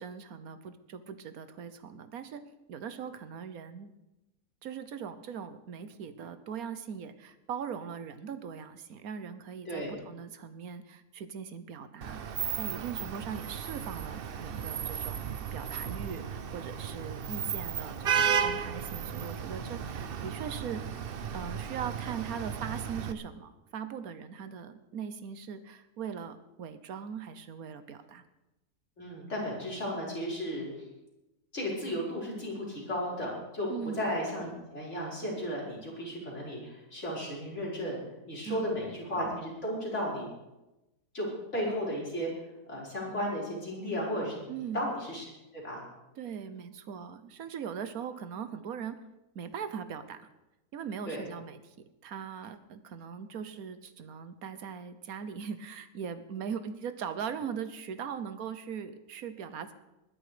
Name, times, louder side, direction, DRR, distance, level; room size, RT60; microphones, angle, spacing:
voice 1, 0.0-2.4 2.7-3.9 4.6-20.9 21.3-28.2 33.7-34.1 36.0-36.1 38.4-38.8 44.5-44.9 46.2-49.0 49.3-50.3 50.7-51.7 52.0-59.7, right 7 dB, 70° right, 11 dB, 1.5 m, -40 dB
Vehicle horn car horn honking / Traffic noise roadway noise, 12.0-23.1, right 7 dB, 50° right, 0.8 m, -34 dB
voice 2, 29.0-30.7 31.5-33.7 34.0-38.0 38.3-40.3 41.1-42.4 42.7-44.4 44.7-45.2 45.5-45.8 51.1-51.2, equal, 50° left, -5 dB, 5.5 m, -34 dB
20.5 x 10.5 x 5.0 m, 0.99 s
omnidirectional pair, 1.6 m